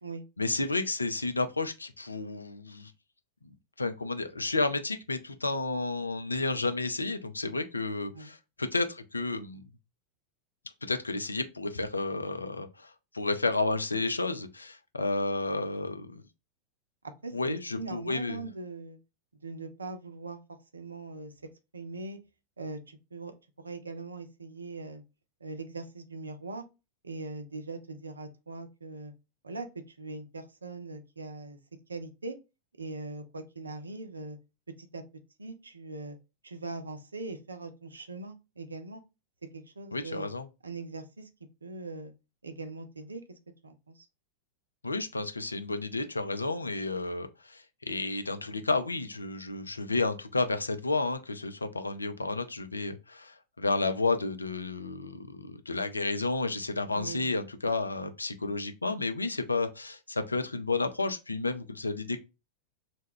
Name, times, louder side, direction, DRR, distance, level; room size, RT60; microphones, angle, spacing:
voice 1, 0.4-2.9 3.8-9.6 10.8-12.9 13.1-16.2 17.3-18.4 39.9-40.5 44.8-62.2, left 3 dB, 80° left, 0.4 m, -31 dB
voice 2, 17.2-19.0 19.4-20.4 20.7-21.3 21.7-22.2 22.6-25.0 25.4-26.6 27.0-29.1 29.4-31.6 31.9-32.4 32.8-34.4 34.8-35.0 35.4-36.2 36.4-39.0 39.5-40.3 40.6-41.3 41.6-42.1 42.4-43.2 43.6-44.1 56.9-57.3, right 3 dB, 75° right, 0.4 m, -41 dB
2.2 x 2.1 x 3.4 m
figure-of-eight pair, 90°, 0 cm